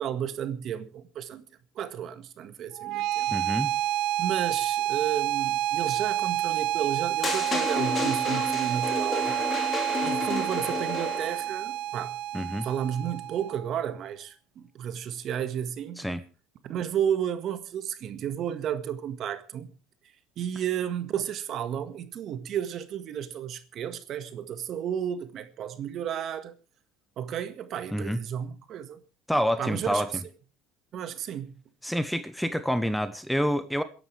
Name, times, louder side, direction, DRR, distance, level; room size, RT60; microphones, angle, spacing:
voice 1, 0.0-1.4 1.7-3.3 4.2-9.4 10.0-16.0 16.6-19.7 20.4-26.5 27.2-29.0 29.6-30.0 30.9-31.5, right 9 dB, 50° right, 1.7 m, -32 dB
sound 1, 2.7-13.8, right 13 dB, 70° right, 1.1 m, -29 dB
voice 2, 3.3-3.7 12.3-12.7 16.0-16.2 27.9-28.2 29.3-30.1 31.8-33.8, equal, ahead, 0.9 m, -27 dB
sound 2, 7.2-11.5, left 4 dB, 25° left, 2.5 m, -31 dB
27.5 x 11.0 x 3.4 m
cardioid pair, 120°, 0 cm